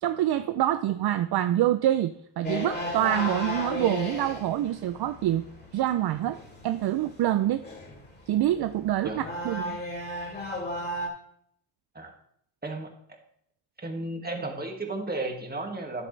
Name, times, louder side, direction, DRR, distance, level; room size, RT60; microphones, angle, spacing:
voice 1, 0.0-5.5 5.7-6.4 6.6-7.6 8.3-9.8, right 12 dB, 55° right, 11 dB, 0.5 m, -26 dB
sound 1, 2.4-11.1, left 1 dB, 20° left, 2.9 m, -35 dB
voice 2, 12.6-13.2 13.8-16.1, right 2 dB, 20° right, 3 dB, 2.0 m, -34 dB
9.8 x 8.4 x 3.3 m, 0.68 s
cardioid pair, 80°, 48 cm